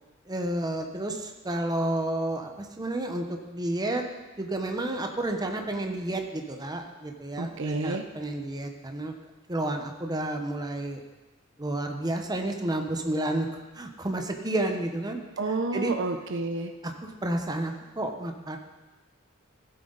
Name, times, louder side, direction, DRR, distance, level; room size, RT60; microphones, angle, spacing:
voice 1, 0.3-4.0 4.4-9.1 9.5-11.0 11.6-13.5 13.7-15.2 15.7-15.9 16.8-18.6, right 1 dB, 20° right, 4 dB, 0.9 m, -31 dB
voice 2, 7.4-8.1 15.4-16.7, right 3 dB, 60° right, 7 dB, 0.6 m, -30 dB
15.5 x 7.9 x 4.0 m, 1.2 s
head